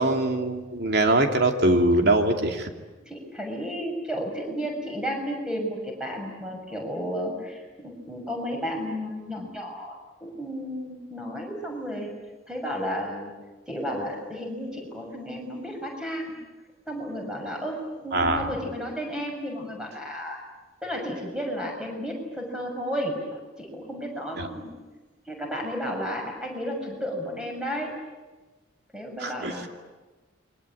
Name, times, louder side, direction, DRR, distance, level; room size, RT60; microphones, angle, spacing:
voice 1, 0.0-2.7 18.1-18.5 24.4-24.5 29.2-29.7, right 2 dB, 55° right, 4 dB, 2.8 m, -23 dB
voice 2, 3.0-9.9 10.2-12.1 12.5-13.3 13.7-16.4 16.9-20.4 20.8-24.7 25.3-27.9 28.9-29.7, equal, 5° right, 1 dB, 6.7 m, -33 dB
29.0 x 23.5 x 8.6 m, 1.2 s
head